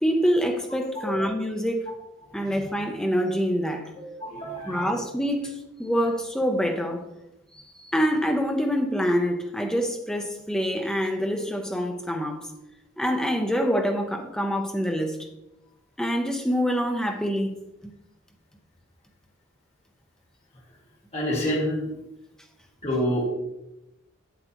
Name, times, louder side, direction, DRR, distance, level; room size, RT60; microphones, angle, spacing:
voice 1, 0.0-1.9 2.3-3.9 4.7-7.1 7.5-12.5 13.0-15.2 16.0-17.6 17.8-17.9, equal, 5° left, 0.6 m, -26 dB
voice 2, 2.2-2.7 4.0-4.9 21.1-22.0 22.8-23.2, equal, 30° left, 2.1 m, -28 dB
7.9 x 7.7 x 3.0 m
head